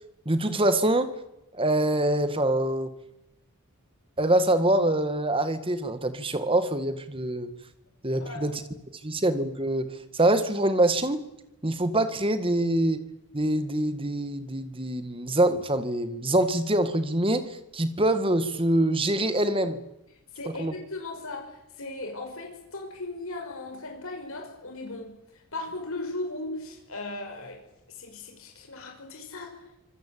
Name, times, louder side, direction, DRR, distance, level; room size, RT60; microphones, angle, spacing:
voice 1, 0.3-1.1 1.5-2.9 4.2-7.5 8.0-8.5 9.0-11.2 11.6-13.0 13.3-19.8 20.6-20.7, right 1 dB, 25° right, 10 dB, 1.8 m, -25 dB
voice 2, 20.3-27.6 27.9-29.7, left 2 dB, 70° left, 2 dB, 5.7 m, -37 dB
25.5 x 19.5 x 8.7 m, 0.91 s
head